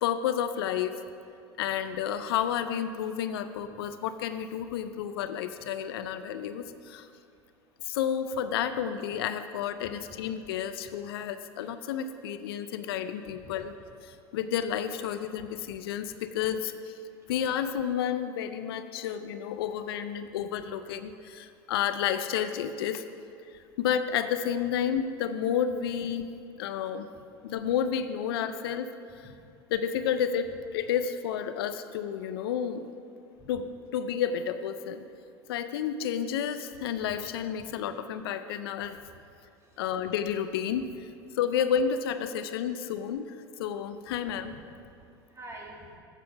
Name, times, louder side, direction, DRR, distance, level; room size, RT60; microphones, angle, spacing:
voice 1, 0.0-0.9 1.6-7.1 7.8-13.7 14.0-16.9 17.3-23.0 23.8-26.3 26.6-27.1 27.4-28.9 29.7-32.9 33.5-35.0 35.5-39.0 39.8-40.9 41.4-44.5, left 8 dB, 75° left, 10 dB, 0.5 m, -31 dB
voice 2, 9.8-10.2 10.8-10.9 13.3-13.7 14.1-14.2 16.1-16.2 17.1-17.3 29.2-29.4 33.4-33.5 37.6-37.7 39.6-39.8 44.4-44.6 44.9-46.0, right 1 dB, 25° right, -1 dB, 2.0 m, -49 dB
8.5 x 7.5 x 5.6 m, 2.5 s
hypercardioid pair, 85°, 13 cm